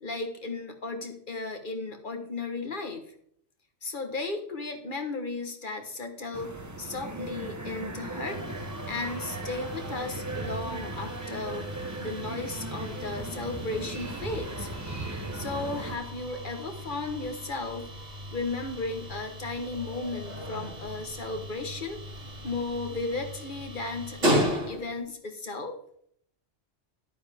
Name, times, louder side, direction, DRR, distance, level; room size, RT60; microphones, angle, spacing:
voice 1, 0.0-3.0 3.8-8.4 8.9-11.7 12.0-14.7 15.3-17.9 18.3-22.0 22.4-25.8, left 3 dB, 45° left, 4 dB, 1.3 m, -35 dB
sound 1, 6.3-16.0, right 2 dB, 15° right, 0.8 m, -37 dB
sound 2, 8.2-25.1, equal, 90° right, 3.0 m, -36 dB
sound 3, 14.0-24.2, equal, 55° right, 3.4 m, -49 dB
10.5 x 9.2 x 3.5 m, 0.66 s
omnidirectional pair, 1.2 m